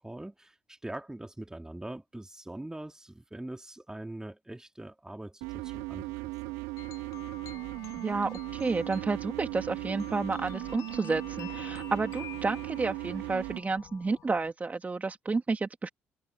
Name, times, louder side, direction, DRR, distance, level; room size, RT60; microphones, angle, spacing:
voice 1, 0.0-6.1 6.4-6.5, right 1 dB, 10° right, 2.9 m, -42 dB
sound 1, 5.4-13.6, right 24 dB, 80° right, 2.7 m, -38 dB
sound 2, 6.8-14.5, left 12 dB, 65° left, 7.8 m, -48 dB
voice 2, 8.0-15.9, right 3 dB, 25° right, 2.5 m, -31 dB
hypercardioid pair, 50°, 6 cm